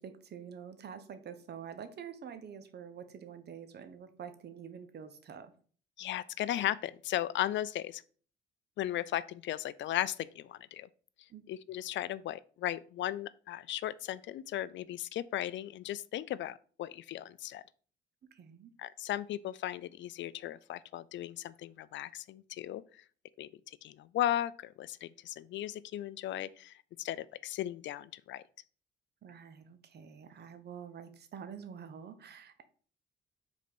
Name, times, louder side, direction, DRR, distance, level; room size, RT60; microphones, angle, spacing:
voice 1, 0.0-5.5 11.3-11.4 18.3-18.7 29.2-32.6, right 7 dB, 55° right, 1.1 m, -47 dB
voice 2, 6.0-8.0 8.8-10.9 11.5-17.6 18.8-23.0 23.4-28.4, left 12 dB, 70° left, 0.4 m, -36 dB
5.0 x 4.3 x 5.3 m
cardioid pair, 90°, 20 cm